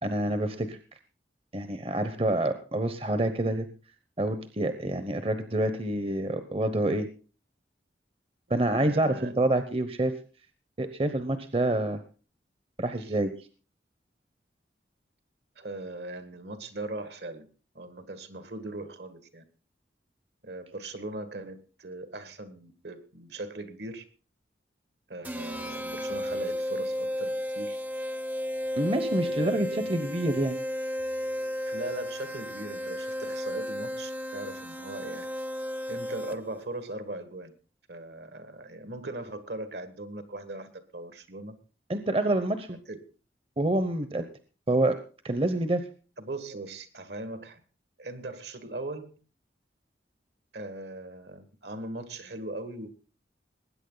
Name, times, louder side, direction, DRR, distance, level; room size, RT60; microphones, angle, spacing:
voice 1, 0.0-0.8 1.5-3.7 4.2-7.1 8.5-10.1 10.8-12.0 12.8-13.3 28.8-30.6 41.9-42.8 43.6-44.2 44.7-45.0 45.2-45.8, right 1 dB, 30° right, 10 dB, 1.0 m, -27 dB
voice 2, 8.7-9.5 13.0-13.1 15.6-17.5 17.8-19.4 20.4-24.0 25.1-27.8 29.3-30.0 31.7-35.3 35.9-37.5 37.9-41.6 42.7-43.0 46.2-47.6 48.0-49.2 50.5-52.9, right 2 dB, 70° right, 11 dB, 1.8 m, -39 dB
sound 1, 25.2-36.6, equal, 10° right, 0.7 m, -33 dB
20.0 x 9.2 x 4.0 m, 0.36 s
head